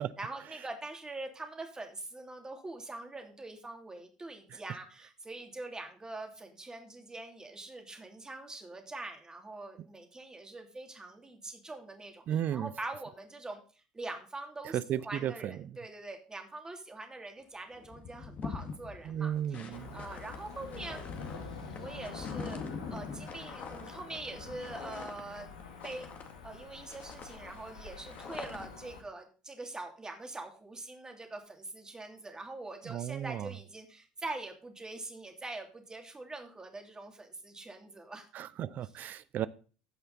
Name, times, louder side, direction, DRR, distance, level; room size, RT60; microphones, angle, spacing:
voice 1, 0.2-12.2 12.5-13.6 13.9-14.8 15.0-21.1 21.8-25.5 25.8-26.1 26.4-38.3, right 2 dB, 20° right, 2.9 m, -44 dB
voice 2, 12.3-12.7 14.7-15.8 19.0-20.0 32.8-33.5 38.3-39.5, right 10 dB, 50° right, 0.7 m, -34 dB
sound 1, 17.4-17.5 17.7-26.6 26.9-28.9, left 5 dB, 40° left, 1.9 m, -44 dB
Cricket / Motor vehicle (road), 19.7-29.0, left 4 dB, 85° left, 1.9 m, -47 dB
15.5 x 5.7 x 4.1 m
hypercardioid pair, 65°, 4 cm